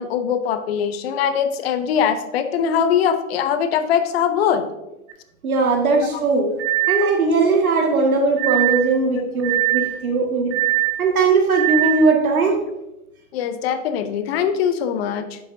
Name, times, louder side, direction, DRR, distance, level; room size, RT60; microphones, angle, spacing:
voice 1, 0.0-4.7 6.0-6.1 13.3-15.4, left 8 dB, 45° left, 10 dB, 0.7 m, -22 dB
sound 1, 5.1-5.2 6.6-7.1 8.4-8.9 9.4-10.0 10.5-11.0 11.5-12.0, right 17 dB, 45° right, 1.0 m, -21 dB
voice 2, 5.4-6.5 6.9-10.6 11.0-12.6, right 3 dB, 80° right, 1 dB, 1.9 m, -19 dB
7.9 x 6.9 x 2.7 m, 0.94 s
hypercardioid pair, 125°, 42 cm